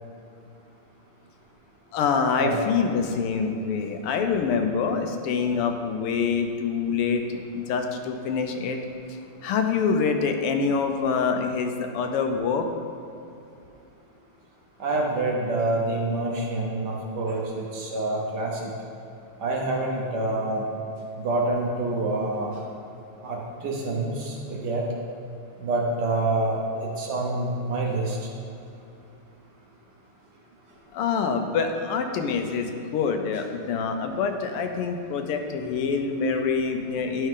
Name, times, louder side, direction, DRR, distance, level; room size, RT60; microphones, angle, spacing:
voice 1, 1.9-8.8 9.4-12.7 30.9-37.3, left 5 dB, 90° left, 5 dB, 1.7 m, -25 dB
voice 2, 14.8-18.6 19.4-20.6 21.2-22.5 23.2-24.8 25.6-28.2, right 2 dB, 60° right, -1 dB, 1.3 m, -27 dB
11.5 x 5.6 x 3.7 m, 2.6 s
omnidirectional pair, 2.4 m